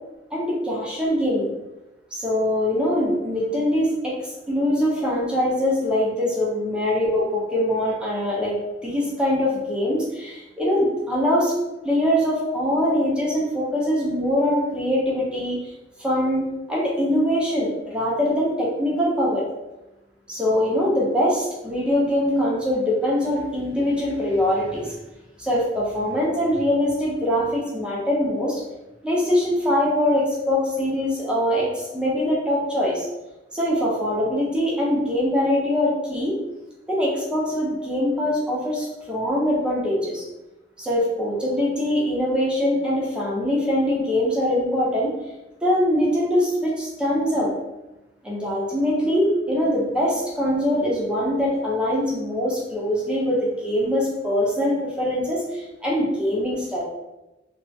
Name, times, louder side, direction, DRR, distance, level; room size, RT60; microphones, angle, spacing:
voice 1, 0.3-1.5 2.1-8.6 8.8-11.5 11.8-15.6 16.0-19.4 20.3-24.9 25.4-28.6 29.0-33.1 33.5-36.4 36.9-40.2 40.8-45.1 45.6-47.5 48.2-56.8, left 1 dB, 5° right, -5 dB, 0.5 m, -23 dB
2.3 x 2.2 x 2.6 m, 1.0 s
head